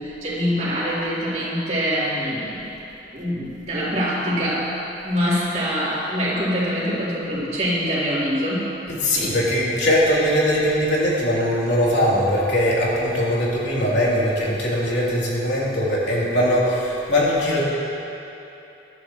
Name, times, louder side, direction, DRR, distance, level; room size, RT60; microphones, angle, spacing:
voice 1, 0.0-2.7 3.1-4.7 5.0-8.7, equal, 40° right, -9 dB, 3.4 m, -24 dB
voice 2, 8.9-17.6, equal, 75° left, -6 dB, 3.1 m, -21 dB
21.5 x 11.0 x 3.1 m, 3.0 s
head